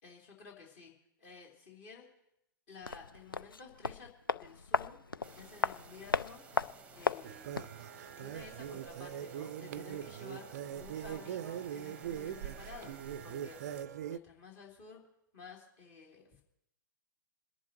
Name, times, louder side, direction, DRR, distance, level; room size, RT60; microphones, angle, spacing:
voice 1, 0.0-0.9 1.2-2.1 2.7-5.0 5.3-6.4 6.9-7.5 8.2-10.5 10.7-12.9 13.2-13.6 14.0-15.0 15.3-16.4, left 5 dB, 45° left, -1 dB, 3.2 m, -52 dB
sound 1, 2.8-7.8 8.1-8.2, left 4 dB, 85° left, 0.4 m, -36 dB
sound 2, 5.2-13.8, right 4 dB, 10° right, 0.8 m, -56 dB
sound 3, 7.2-14.2, right 10 dB, 50° right, 0.4 m, -42 dB
27.5 x 10.5 x 3.0 m, 0.81 s
figure-of-eight pair, 110°, 11 cm